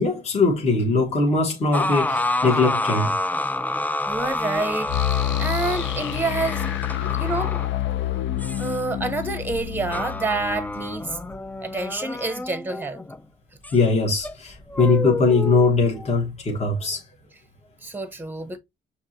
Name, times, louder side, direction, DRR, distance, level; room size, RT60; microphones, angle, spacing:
voice 1, 0.0-3.2 7.0-7.1 13.7-17.0, left 3 dB, 35° left, 1.3 m, -21 dB
sound 1, 1.7-13.2 13.6-13.8 14.2-16.1, left 2 dB, 10° left, 0.3 m, -29 dB
voice 2, 4.1-6.6 7.1-7.6 8.6-11.2 11.6-13.0 17.8-18.6, right 3 dB, 10° right, 0.8 m, -28 dB
sound 2, 4.9-11.7, left 13 dB, 75° left, 0.5 m, -28 dB
5.9 x 2.9 x 2.7 m
cardioid pair, 90°, 20 cm